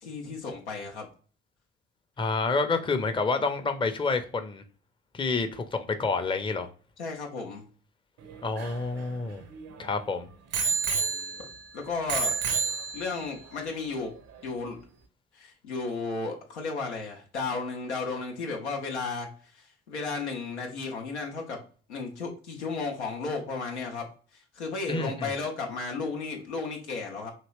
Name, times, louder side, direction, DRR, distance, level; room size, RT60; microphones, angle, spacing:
voice 1, 0.0-1.1 7.0-7.6 11.4-11.5 11.7-12.3 12.9-14.1 14.4-14.8 15.3-21.6 21.9-24.1 24.5-27.3, left 4 dB, 85° left, 0.6 m, -34 dB
voice 2, 2.2-4.6 5.1-6.7 8.4-9.4 9.8-10.3 24.9-25.3, left 3 dB, 15° left, 0.5 m, -28 dB
Bicycle bell, 8.2-9.9 10.5-11.7 12.1-13.3 14.1-14.2, right 5 dB, 50° right, 0.6 m, -30 dB
2.9 x 2.7 x 3.1 m
figure-of-eight pair, 45°, 33 cm